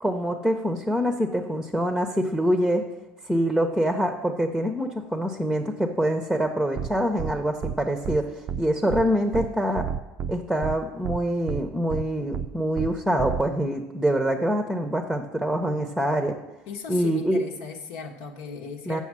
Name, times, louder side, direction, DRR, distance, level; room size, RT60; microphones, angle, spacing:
voice 1, 0.0-2.9 3.3-9.9 10.3-16.4 16.9-17.4 18.9-19.0, equal, ahead, 5 dB, 0.7 m, -25 dB
sound 1, 6.8-6.9 7.2-7.3 7.6-7.7 8.0-8.2 8.5-8.6 8.9-9.0 9.3-9.5 9.8-10.3 10.6-10.7 11.0-11.2 11.5-11.6 11.9-12.0 12.3-12.5 12.8-12.9 13.2-13.4, right 8 dB, 40° right, 0.3 m, -29 dB
voice 2, 16.7-19.0, left 5 dB, 85° left, 1 dB, 1.2 m, -37 dB
7.2 x 6.0 x 7.3 m, 0.99 s
cardioid pair, 125°, 3 cm